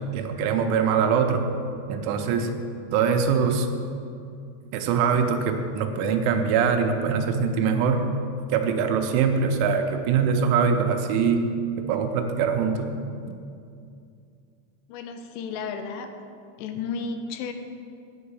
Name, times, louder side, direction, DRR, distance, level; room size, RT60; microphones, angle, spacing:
voice 1, 0.1-1.5 1.9-2.5 2.9-3.7 4.7-8.1 8.5-13.0, right 6 dB, 90° right, 5 dB, 3.1 m, -23 dB
voice 2, 14.9-16.1 16.6-17.5, left 5 dB, 85° left, 7 dB, 3.1 m, -33 dB
10.0 x 5.5 x 8.3 m, 2.4 s
omnidirectional pair, 5.5 m